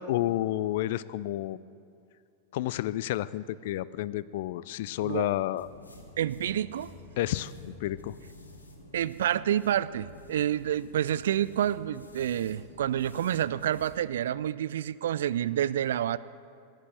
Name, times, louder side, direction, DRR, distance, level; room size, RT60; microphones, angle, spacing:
voice 1, 0.0-1.6 2.5-5.7 7.2-8.1, left 14 dB, 50° left, 18 dB, 0.4 m, -30 dB
sound 1, 5.6-13.9, left 2 dB, 80° left, 1.6 m, -50 dB
voice 2, 6.2-6.9 8.9-16.2, right 11 dB, 60° right, 17 dB, 0.3 m, -28 dB
13.5 x 10.5 x 7.6 m, 2.4 s
figure-of-eight pair, 90°, 0 cm